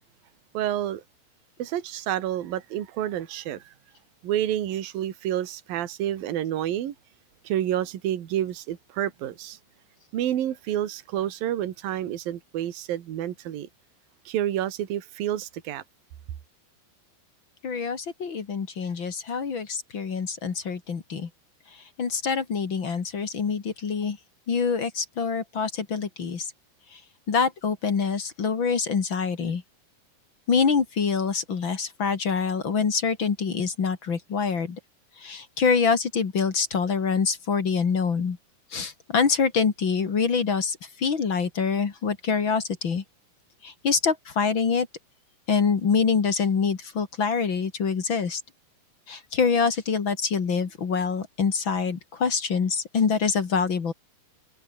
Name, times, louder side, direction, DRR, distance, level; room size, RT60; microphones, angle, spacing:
voice 1, 0.5-1.0 1.6-3.7 4.2-7.0 7.4-9.6 10.1-13.7 14.3-15.8, right 11 dB, 60° right, 3.5 m, -29 dB
voice 2, 17.6-21.3 22.0-24.2 24.5-26.5 26.9-27.0 27.3-29.6 30.5-34.8 35.2-38.4 38.7-43.0 43.6-44.9 45.5-48.4 49.1-53.9, left 5 dB, 40° left, 2.1 m, -25 dB
omnidirectional pair, 4.9 m